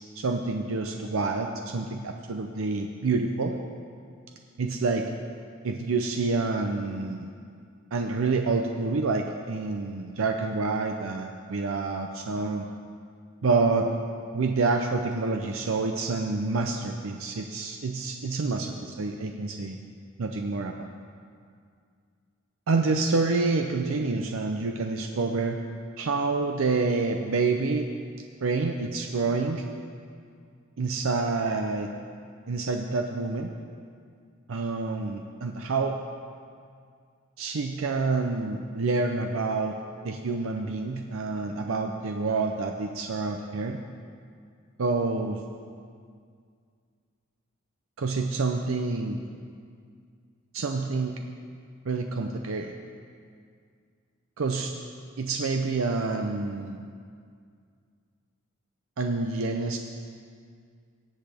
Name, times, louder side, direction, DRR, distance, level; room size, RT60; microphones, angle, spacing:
voice 1, 0.2-3.5 4.6-5.1 5.6-7.3 7.9-12.7 13.4-13.9 14.3-19.8 20.2-20.9 22.7-25.6 26.0-27.9 28.4-29.6 30.8-31.9 32.5-33.5 34.5-36.0 37.4-39.8 40.0-43.8 44.8-45.4 48.0-49.2 50.5-51.1 51.9-52.7 54.4-54.7 55.2-56.8 59.0-59.8, right 3 dB, 70° right, 4 dB, 0.5 m, -27 dB
18.0 x 8.0 x 3.4 m, 2.2 s
head